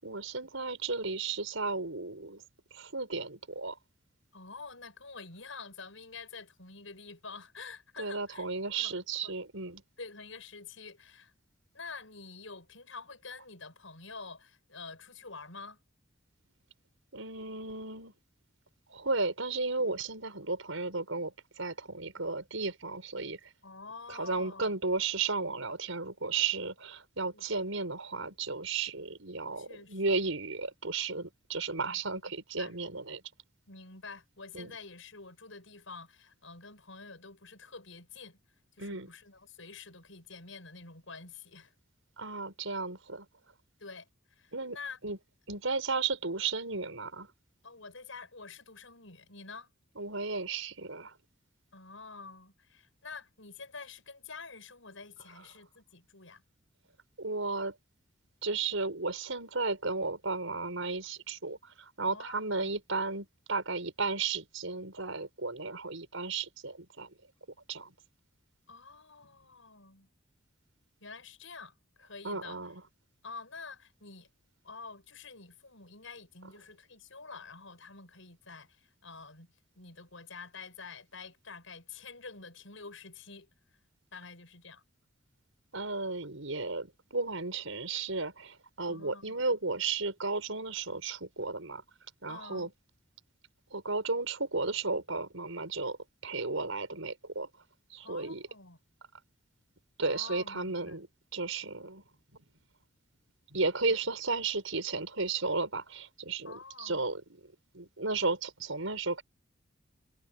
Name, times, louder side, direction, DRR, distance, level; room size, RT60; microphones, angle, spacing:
voice 1, 0.0-2.4 2.7-3.8 8.0-9.8 17.1-18.1 18.9-23.5 24.1-33.2 34.5-34.8 38.8-39.1 42.2-43.3 44.5-44.8 45.0-45.2 45.5-47.3 50.0-51.1 57.2-57.8 58.4-67.1 67.7-67.9 72.2-72.8 85.7-91.8 92.2-92.7 93.7-96.0 96.2-97.5 97.9-98.4 100.0-101.1 101.3-102.0 103.5-106.5 106.8-109.2, right 3 dB, 85° right, 5.8 m, -34 dB
voice 2, 4.3-8.5 8.8-8.9 9.2-9.3 10.0-11.3 11.7-15.8 23.6-24.8 27.3-27.4 29.6-30.0 31.9-32.2 32.6-32.8 33.7-38.4 38.7-41.7 43.8-45.0 47.6-49.7 51.7-56.4 62.0-62.7 68.7-70.1 71.0-72.6 73.2-74.3 74.6-83.5 84.1-84.8 88.9-89.4 92.3-92.7 98.0-98.8 100.1-101.0 103.9-104.0 106.4-107.0, left 4 dB, 80° left, 6.1 m, -48 dB
head